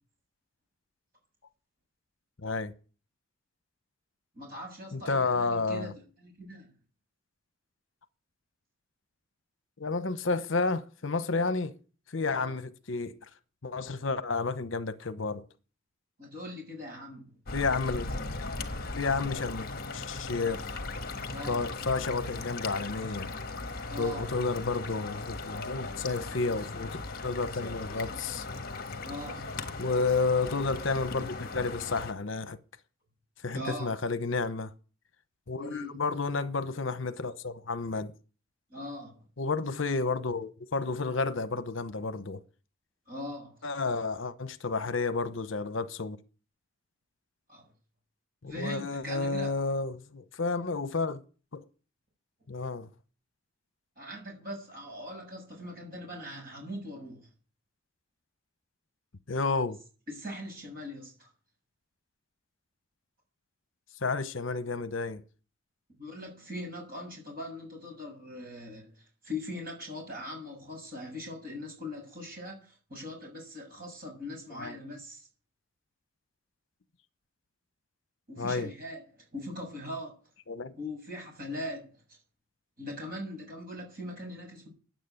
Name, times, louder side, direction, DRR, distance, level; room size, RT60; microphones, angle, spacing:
voice 1, 2.4-2.7 4.9-5.9 9.8-11.7 12.1-13.2 13.6-15.4 17.5-18.1 19.0-19.7 19.9-20.7 21.5-23.3 24.0-27.0 27.2-28.5 29.8-32.6 33.4-34.7 35.5-38.1 39.4-42.4 43.6-46.2 48.4-51.2 51.5-51.6 52.5-52.9 59.3-59.8 64.0-65.2 74.5-74.8 78.4-78.7 80.5-80.7, left 3 dB, 65° left, 0.9 m, -31 dB
voice 2, 4.4-6.7 12.2-12.6 16.2-17.4 21.3-21.7 23.9-24.3 29.0-29.5 33.5-33.9 35.6-36.0 38.7-39.2 43.1-43.7 47.5-47.7 48.5-49.5 54.0-57.3 60.1-61.3 66.0-75.3 78.3-80.2 80.8-82.2 82.8-84.7, left 1 dB, 45° right, 7.2 m, -41 dB
sound 1, 17.5-32.1, left 3 dB, 45° left, 1.4 m, -38 dB
10.0 x 9.3 x 9.2 m
head